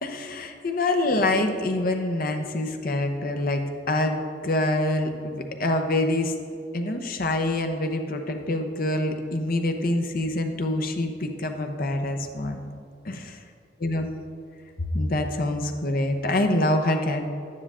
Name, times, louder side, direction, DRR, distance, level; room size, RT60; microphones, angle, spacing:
voice 1, 0.0-3.6 3.9-6.3 6.7-12.6 13.0-13.4 13.8-14.1 14.9-17.2, left 1 dB, 55° left, 5 dB, 0.9 m, -25 dB
11.5 x 9.7 x 3.7 m, 2.4 s
head